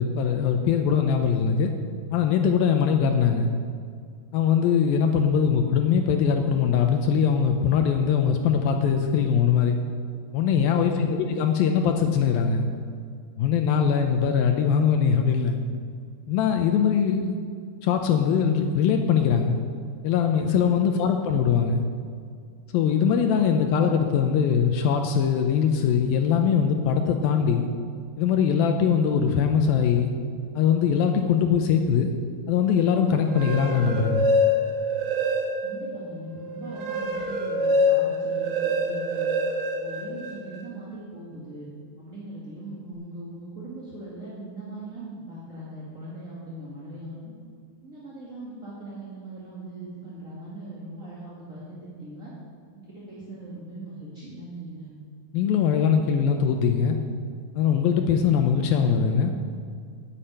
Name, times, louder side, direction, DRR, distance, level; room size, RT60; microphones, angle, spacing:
voice 1, 0.0-1.7 2.1-3.5 4.3-9.8 10.3-12.7 13.4-15.6 16.3-17.4 17.8-19.6 20.0-21.8 22.7-27.7 28.2-30.1 30.6-32.1 32.5-34.2 55.3-57.0 57.6-59.3, left 7 dB, 80° left, 5 dB, 2.3 m, -22 dB
voice 2, 10.8-11.3 20.9-21.1 35.6-39.3 39.8-41.7 42.0-47.3 47.8-52.3 52.7-54.9, right 1 dB, 30° right, -8 dB, 1.8 m, -40 dB
sound 1, 33.2-35.9 36.3-40.6, left 1 dB, 70° right, 3.2 m, -25 dB
9.9 x 8.6 x 9.0 m, 2.2 s
omnidirectional pair, 4.6 m